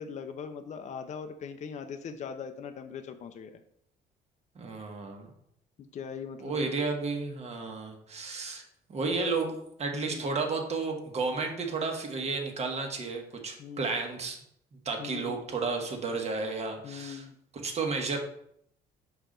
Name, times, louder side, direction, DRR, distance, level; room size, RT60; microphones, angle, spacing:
voice 1, 0.0-3.6 5.8-6.7 9.0-9.3 10.0-10.3 13.6-14.0 15.0-15.4 16.8-17.3, left 6 dB, 45° left, 7 dB, 0.6 m, -40 dB
voice 2, 4.5-5.3 6.4-8.6 8.9-9.5 9.8-14.4 14.7-17.2 17.5-18.2, right 4 dB, 40° right, 2 dB, 1.4 m, -32 dB
6.7 x 4.7 x 3.8 m, 0.72 s
cardioid pair, 110°, 17 cm